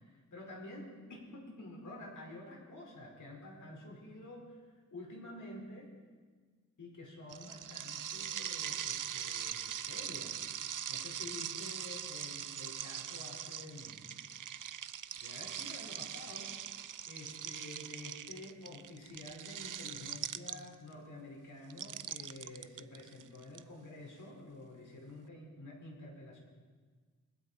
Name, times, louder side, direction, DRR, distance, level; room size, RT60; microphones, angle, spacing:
voice 1, 0.0-5.9 6.8-10.4 10.9-14.0 15.2-16.5 17.1-26.4, left 1 dB, 80° left, -1 dB, 5.1 m, -49 dB
sound 1, 7.3-20.9 21.7-23.6, right 9 dB, 90° right, 0.6 m, -41 dB
29.0 x 20.5 x 4.5 m, 1.5 s
wide cardioid pair, 140°, 31 cm